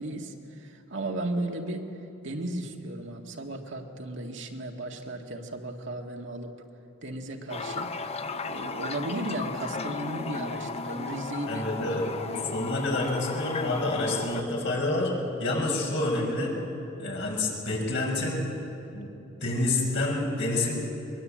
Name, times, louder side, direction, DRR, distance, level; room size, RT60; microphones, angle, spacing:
voice 1, 0.0-1.9 2.2-6.5 7.0-7.9 8.4-12.5, right 1 dB, 65° right, 2 dB, 2.0 m, -35 dB
Toilet flush, 7.5-14.4, left 4 dB, 30° left, 0.8 m, -35 dB
voice 2, 11.5-12.0 12.5-15.1 15.4-16.5 17.0-18.4 18.9-19.1 19.4-20.7, left 2 dB, 65° left, -1 dB, 5.9 m, -28 dB
22.5 x 22.0 x 8.8 m, 3.0 s
head